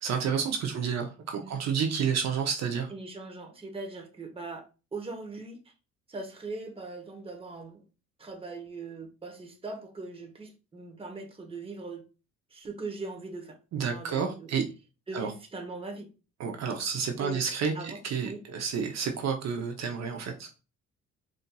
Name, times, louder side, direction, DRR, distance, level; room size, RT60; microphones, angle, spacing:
voice 1, 0.0-2.9 13.7-14.6 15.1-15.3 16.4-20.5, right 6 dB, 60° right, 0.6 m, -30 dB
voice 2, 2.9-4.7 4.9-5.6 6.1-7.8 8.2-12.0 12.5-13.6 13.8-14.5 15.1-16.1 17.2-17.4 17.7-18.0 18.3-18.4, right 3 dB, 20° right, 0.8 m, -40 dB
3.9 x 2.6 x 2.2 m
cardioid pair, 90°, 30 cm